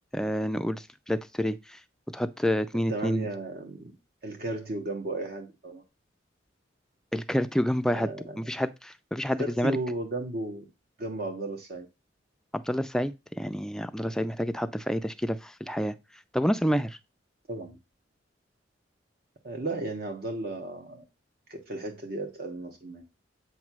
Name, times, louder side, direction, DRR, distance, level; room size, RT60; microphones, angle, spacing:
voice 1, 0.1-1.8 2.1-3.3 7.1-8.1 8.4-9.8 12.5-16.0 16.3-17.0, equal, 5° left, 0.4 m, -28 dB
voice 2, 2.9-3.9 4.2-5.8 7.9-8.4 9.4-10.7 11.0-11.9 17.5-17.8 19.4-21.0 21.5-23.0, right 2 dB, 50° right, 1.0 m, -34 dB
8.0 x 3.1 x 6.0 m
head